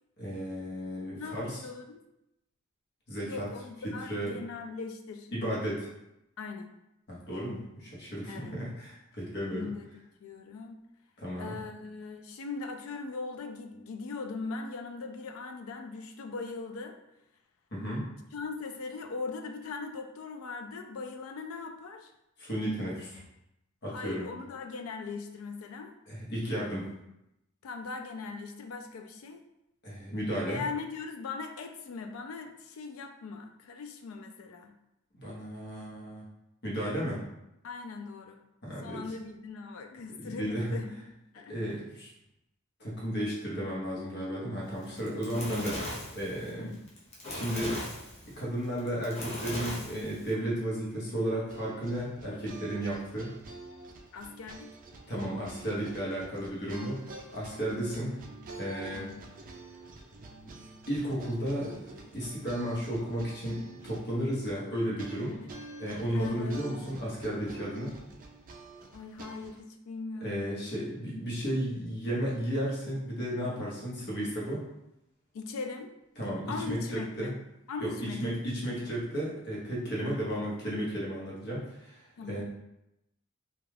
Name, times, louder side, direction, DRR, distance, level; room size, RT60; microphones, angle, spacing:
voice 1, 0.2-1.6 3.1-3.5 3.8-4.4 5.3-5.9 7.1-9.7 11.2-11.6 17.7-18.0 22.4-23.2 23.8-24.3 26.1-26.9 29.8-30.6 35.2-36.2 36.6-37.2 38.6-39.1 40.2-40.8 41.5-42.1 42.8-46.7 47.3-47.8 48.3-53.3 55.1-57.1 57.3-58.1 58.6-59.1 60.4-60.6 60.9-65.4 65.8-67.9 70.2-74.7 76.2-77.3 77.8-82.4, equal, 50° left, -5 dB, 0.9 m, -34 dB
voice 2, 1.1-2.0 3.2-5.3 6.4-6.7 8.3-8.5 9.5-9.9 10.2-10.8 11.4-17.0 18.3-22.1 23.9-25.9 27.6-29.4 30.5-34.7 37.6-38.4 38.8-40.9 41.3-41.6 46.6-46.8 54.1-54.7 57.6-57.8 58.9-59.3 65.3-65.5 66.1-66.8 68.9-70.7 75.3-75.9 76.5-77.4 77.7-78.4 82.2-82.4, left 4 dB, 70° left, 6 dB, 0.3 m, -40 dB
Fire, 44.8-50.3, left 1 dB, 30° left, 0.6 m, -38 dB
sound 1, 51.5-69.6, right 2 dB, 40° right, 0.4 m, -48 dB
2.3 x 2.3 x 3.2 m, 0.86 s
head